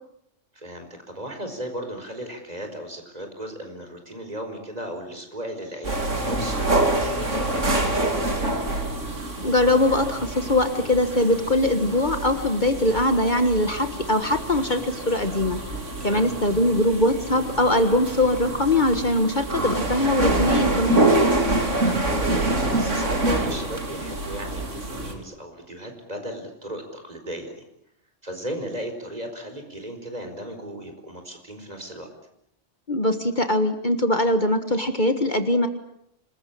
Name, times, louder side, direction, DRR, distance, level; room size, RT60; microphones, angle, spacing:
voice 1, 0.5-8.8 16.0-16.3 21.7-27.6 28.2-32.1, right 1 dB, 30° right, 5 dB, 4.8 m, -36 dB
sound 1, 5.8-25.1, right 2 dB, 80° right, 3.7 m, -26 dB
voice 2, 9.4-15.6 16.0-21.1 32.9-35.7, left 1 dB, 40° left, 8 dB, 1.7 m, -22 dB
26.5 x 21.5 x 8.6 m, 0.76 s
omnidirectional pair, 1.3 m